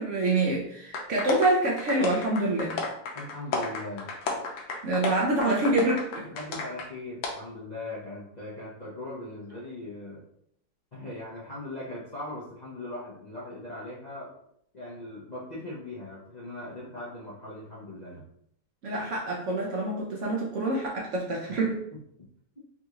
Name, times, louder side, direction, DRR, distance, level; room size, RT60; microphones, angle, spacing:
voice 1, 0.0-2.8 4.8-6.3 18.8-21.8, right 2 dB, 70° right, -3 dB, 0.7 m, -26 dB
sound 1, 0.9-6.9 7.2-7.3, left 3 dB, 85° left, 1.3 m, -33 dB
voice 2, 3.1-4.1 6.2-10.2 10.9-14.3 14.7-18.2 21.5-21.7, left 2 dB, 65° left, -8 dB, 0.4 m, -39 dB
3.7 x 2.4 x 2.8 m, 0.71 s
omnidirectional pair, 1.9 m